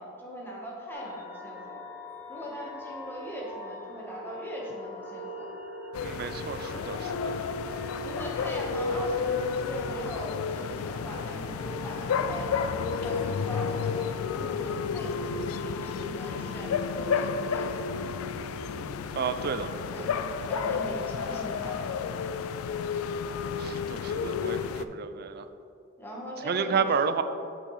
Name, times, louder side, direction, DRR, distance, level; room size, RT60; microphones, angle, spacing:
voice 1, 0.0-1.8 2.3-5.5 8.0-13.9 14.3-18.0 19.9-20.1 20.5-22.1 26.0-26.9, right 1 dB, 10° left, -4 dB, 1.3 m, -40 dB
sound 1, 0.9-17.4, left 1 dB, 10° right, 0.6 m, -44 dB
sound 2, 5.9-24.8, left 5 dB, 85° left, 0.3 m, -31 dB
voice 2, 6.0-7.3 19.2-19.7 23.6-25.5 26.4-27.2, right 6 dB, 50° right, 10 dB, 0.4 m, -31 dB
8.0 x 6.2 x 3.2 m, 2.6 s
head